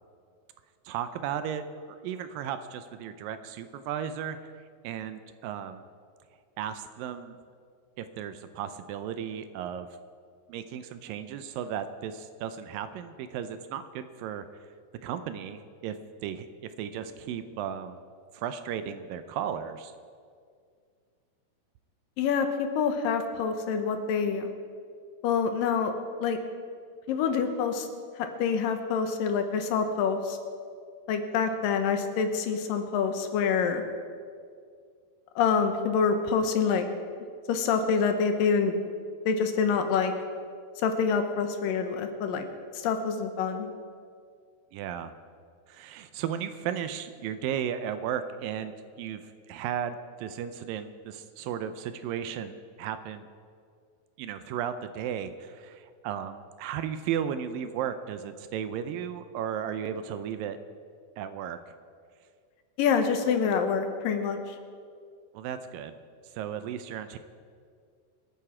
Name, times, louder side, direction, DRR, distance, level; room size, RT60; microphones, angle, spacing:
voice 1, 0.9-4.5 4.8-5.8 6.6-7.4 8.0-9.9 10.5-14.5 15.0-16.0 16.2-18.0 18.3-19.9 44.7-45.1 45.7-48.7 49.0-53.3 54.2-60.6 61.2-61.6 65.3-66.0 66.3-67.2, right 9 dB, 80° right, 10 dB, 2.2 m, -35 dB
voice 2, 22.2-24.5 25.2-25.9 26.2-26.4 27.1-27.9 28.2-30.4 31.1-33.8 35.4-36.9 37.5-38.8 39.3-40.1 40.8-42.4 42.7-43.7 62.8-64.6, left 6 dB, 75° left, 7 dB, 2.5 m, -26 dB
24.5 x 8.9 x 4.9 m, 2.2 s
omnidirectional pair, 4.2 m